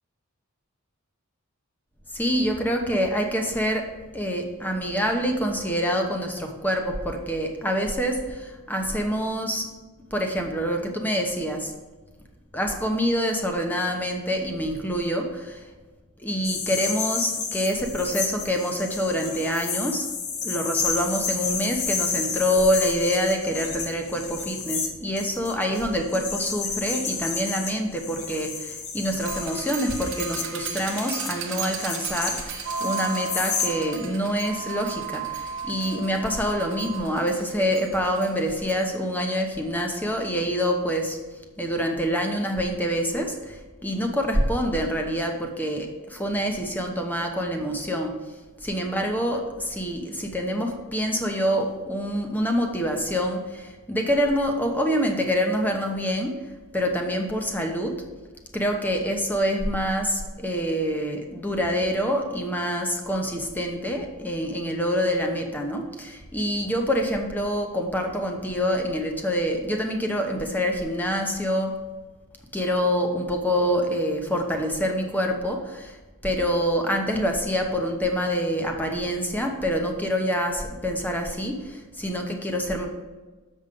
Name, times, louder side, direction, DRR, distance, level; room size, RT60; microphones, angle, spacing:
voice 1, 2.1-3.9 4.1-9.7 10.1-11.7 12.5-15.7 16.2-20.1 20.4-41.2 41.6-48.1 48.6-56.3 56.7-58.0 58.5-71.7 72.5-76.0 76.2-82.9, equal, 10° left, 3 dB, 0.8 m, -26 dB
sound 1, 16.4-33.7, left 5 dB, 80° left, 1.0 m, -31 dB
sound 2, 29.2-38.8, right 6 dB, 55° right, 0.9 m, -34 dB
7.1 x 5.4 x 5.2 m, 1.3 s
head